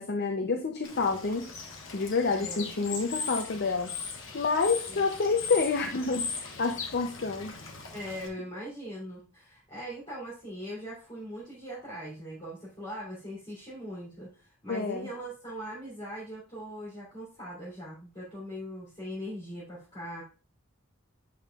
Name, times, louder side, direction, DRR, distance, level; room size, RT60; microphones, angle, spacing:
voice 1, 0.0-1.4 1.9-3.9 4.3-7.5 14.7-15.1, left 4 dB, 50° left, 5 dB, 0.6 m, -28 dB
Bird / Water, 0.8-8.3, left 5 dB, 65° left, 1.2 m, -39 dB
voice 2, 2.3-2.7 4.9-5.1 7.9-20.2, equal, 25° left, -9 dB, 3.2 m, -41 dB
8.5 x 5.6 x 2.4 m, 0.36 s
head